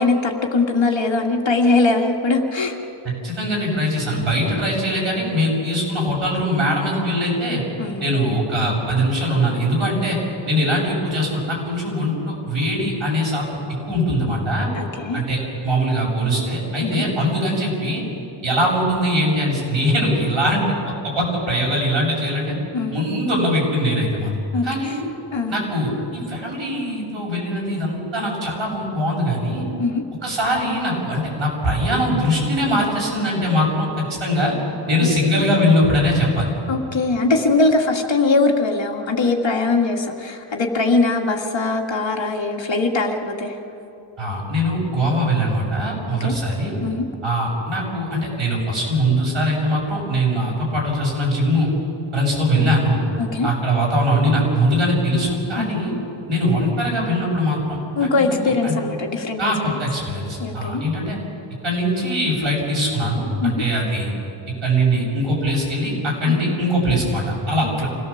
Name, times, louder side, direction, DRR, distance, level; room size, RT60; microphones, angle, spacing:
voice 1, 0.0-2.8 7.8-8.1 14.7-15.2 16.8-17.1 22.7-23.0 24.5-25.0 25.3-25.5 29.8-30.0 35.0-35.1 36.7-43.5 46.2-46.4 46.8-47.1 53.2-53.5 55.6-55.8 58.0-59.4 60.4-60.8 63.4-63.6 66.3-66.4, left 3 dB, 65° left, 2 dB, 2.2 m, -21 dB
voice 2, 3.2-7.6 8.0-10.2 10.5-13.4 13.8-14.7 15.1-18.0 18.4-22.5 22.9-24.3 24.6-25.0 25.5-29.6 30.2-34.5 34.9-36.5 44.2-46.8 47.2-51.7 52.1-53.0 53.4-55.9 56.3-58.8 59.4-61.2 61.6-64.1 64.6-67.9, equal, 70° right, -3 dB, 7.7 m, -21 dB
26.5 x 17.5 x 7.2 m, 2.8 s
wide cardioid pair, 90°, 48 cm